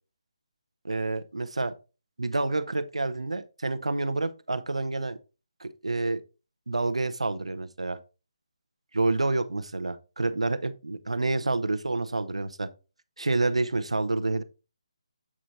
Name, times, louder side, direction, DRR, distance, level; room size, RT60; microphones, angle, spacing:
voice 1, 0.8-1.7 2.2-5.2 5.6-6.2 6.7-8.0 8.9-12.7 13.2-14.4, right 2 dB, 75° right, 0.7 m, -28 dB
7.4 x 5.0 x 2.8 m
figure-of-eight pair, 145°, 3 cm